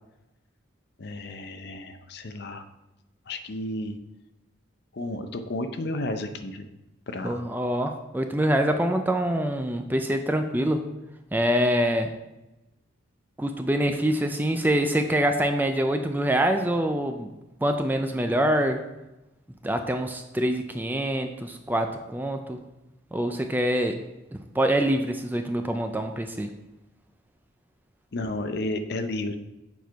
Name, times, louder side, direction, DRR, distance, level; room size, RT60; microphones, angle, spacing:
voice 1, 1.0-2.6 3.3-4.0 4.9-6.7 7.1-7.5 28.1-29.4, left 1 dB, 50° left, 8 dB, 0.6 m, -32 dB
voice 2, 7.2-10.8 11.3-12.1 13.4-17.3 17.6-18.8 19.6-22.6 23.1-24.0 24.5-26.5, right 1 dB, 10° right, 6 dB, 0.3 m, -25 dB
7.1 x 4.5 x 4.5 m, 0.97 s
head